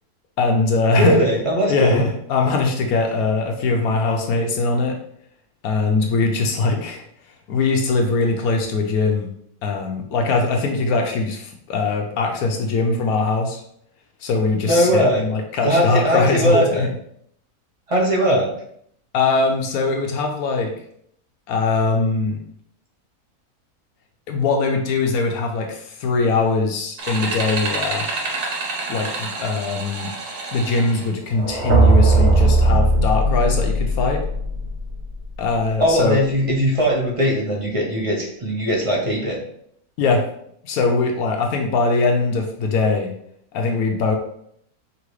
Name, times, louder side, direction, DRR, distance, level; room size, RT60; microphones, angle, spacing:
voice 1, 0.4-1.2 1.7-5.0 5.6-7.0 7.5-9.3 9.6-13.6 14.2-16.9 19.1-20.7 21.5-22.4 24.3-28.0 28.9-30.1 30.5-34.2 35.4-36.2 40.0-40.2 40.6-43.1 43.5-44.2, left 3 dB, 80° left, 2 dB, 1.1 m, -21 dB
voice 2, 1.0-2.0 14.6-15.2 15.6-16.8 17.9-18.5 35.8-39.4, equal, 25° right, -3 dB, 0.9 m, -19 dB
sound 1, 27.0-31.1, right 3 dB, 80° right, 1.6 m, -28 dB
sound 2, 31.3-35.3, right 2 dB, 55° right, 1.0 m, -18 dB
5.0 x 3.0 x 3.1 m, 0.69 s
omnidirectional pair, 1.6 m